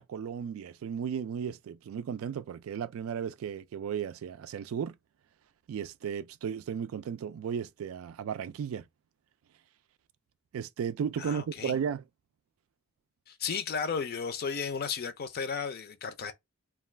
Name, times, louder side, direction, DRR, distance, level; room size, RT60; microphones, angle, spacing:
voice 1, 0.1-4.9 5.7-8.8 10.5-12.0, right 7 dB, 85° right, 0.3 m, -35 dB
voice 2, 11.2-11.8 13.3-16.3, left 6 dB, 50° left, 0.4 m, -34 dB
2.3 x 2.3 x 3.1 m
head